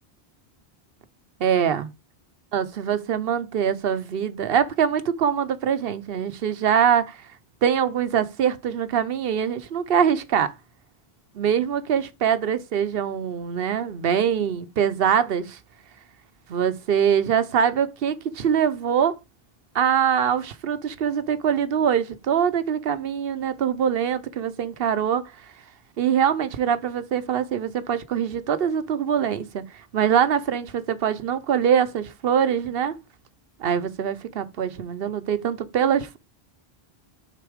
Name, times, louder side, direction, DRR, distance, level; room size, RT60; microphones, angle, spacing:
voice 1, 1.4-1.9 2.5-7.2 7.6-10.5 11.4-15.6 16.5-19.2 19.7-25.2 26.0-29.6 29.9-32.9 33.6-36.2, right 8 dB, 70° right, 0.9 m, -23 dB
6.8 x 4.0 x 4.9 m
omnidirectional pair, 1.0 m